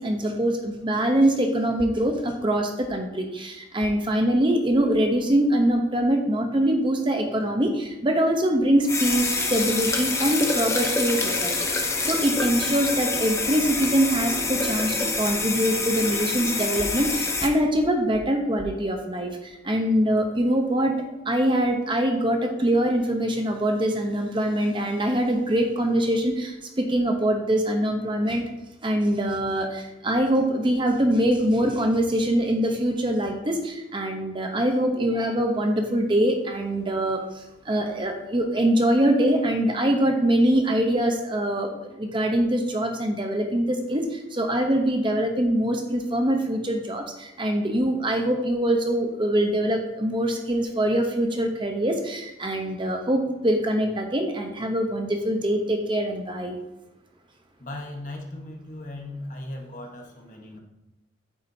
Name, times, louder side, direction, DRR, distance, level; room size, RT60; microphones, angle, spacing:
voice 1, 0.0-11.6 12.0-28.4 28.8-56.6, right 1 dB, 25° right, 4 dB, 0.8 m, -23 dB
sound 1, 8.8-17.5, left 3 dB, 15° left, 0.7 m, -26 dB
voice 2, 57.6-60.6, left 1 dB, 40° left, 2 dB, 1.2 m, -37 dB
8.4 x 8.3 x 2.7 m, 0.96 s
head